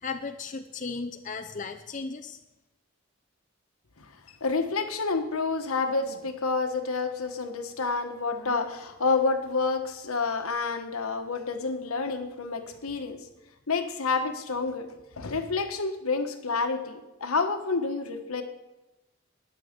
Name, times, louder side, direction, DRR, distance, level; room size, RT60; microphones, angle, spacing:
voice 1, 0.0-2.4, left 4 dB, 35° left, 6 dB, 0.6 m, -35 dB
voice 2, 4.4-13.2 13.7-18.4, left 4 dB, 85° left, 7 dB, 1.3 m, -29 dB
20.5 x 7.0 x 5.2 m, 1.0 s
head